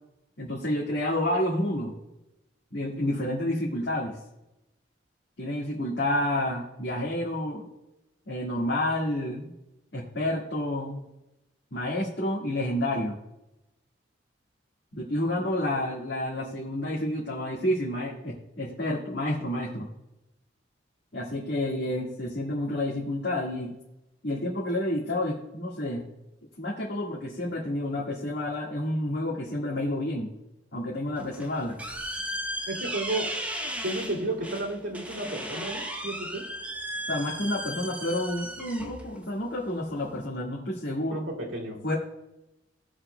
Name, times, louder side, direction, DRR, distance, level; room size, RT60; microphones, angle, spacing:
voice 1, 0.4-1.9 2.7-4.2 5.4-7.7 8.3-9.5 9.9-11.0 11.7-13.2 14.9-19.9 21.1-23.7 24.2-26.1 26.6-30.3 30.7-31.8 37.1-41.2 41.8-41.9, left 1 dB, 60° left, -4 dB, 1.7 m, -29 dB
sound 1, 31.2-40.3, equal, 5° right, 0.8 m, -36 dB
voice 2, 32.7-33.3 33.8-36.5 41.1-41.8, right 2 dB, 75° right, 0 dB, 2.3 m, -32 dB
19.0 x 6.5 x 2.2 m, 0.94 s
head